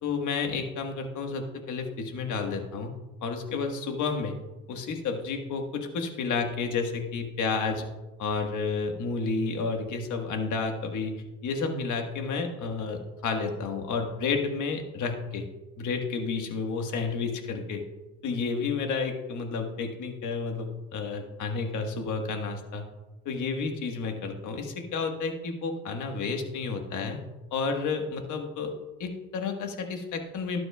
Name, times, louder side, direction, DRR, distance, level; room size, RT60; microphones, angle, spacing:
voice 1, 0.0-2.9 3.2-4.3 4.7-7.9 8.2-11.1 11.4-15.5 15.8-17.8 18.2-22.9 23.2-27.2 27.5-28.7 29.0-30.6, left 4 dB, 75° left, 4 dB, 1.4 m, -31 dB
12.0 x 9.6 x 2.3 m, 1.1 s
cardioid pair, 90°, 30 cm